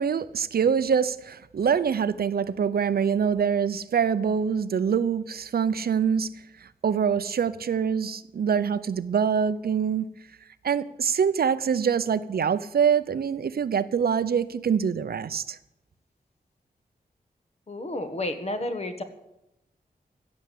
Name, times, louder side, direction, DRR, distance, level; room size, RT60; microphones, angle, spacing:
voice 1, 0.0-6.3 6.8-10.1 10.6-15.6, right 7 dB, 75° right, 14 dB, 0.7 m, -25 dB
voice 2, 17.7-19.0, left 1 dB, 40° left, 7 dB, 1.6 m, -31 dB
16.0 x 7.3 x 8.4 m, 0.87 s
wide cardioid pair, 130°, 16 cm